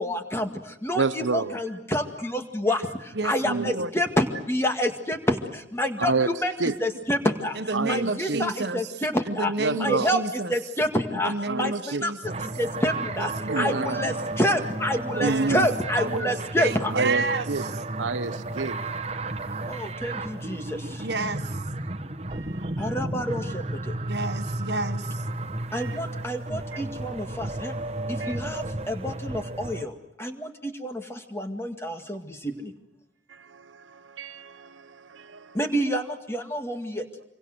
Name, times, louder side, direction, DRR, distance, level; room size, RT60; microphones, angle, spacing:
voice 1, 0.0-6.5 6.8-16.9 19.7-21.1 22.8-24.0 25.7-27.8 28.1-32.7 35.5-37.1, equal, 15° left, 2.0 m, -28 dB
voice 2, 0.9-1.6 3.4-3.7 6.0-6.3 6.6-6.8 7.7-8.4 9.6-10.1 11.5-12.1 13.5-14.1 15.2-15.7 16.9-17.6 18.0-18.8 19.5-19.7 22.3-23.0 25.7-26.0 28.2-28.4 33.3-35.6, right 3 dB, 80° right, 0.9 m, -29 dB
voice 3, 3.1-3.9 7.6-8.8 9.3-10.5 11.2-12.4 13.2-13.8 15.1-15.6 16.0-17.5 17.7-17.8 21.0-21.6 24.1-25.2, right 3 dB, 55° right, 1.2 m, -30 dB
sound 1, 12.2-29.8, right 2 dB, 35° right, 1.4 m, -33 dB
26.5 x 24.0 x 7.9 m
head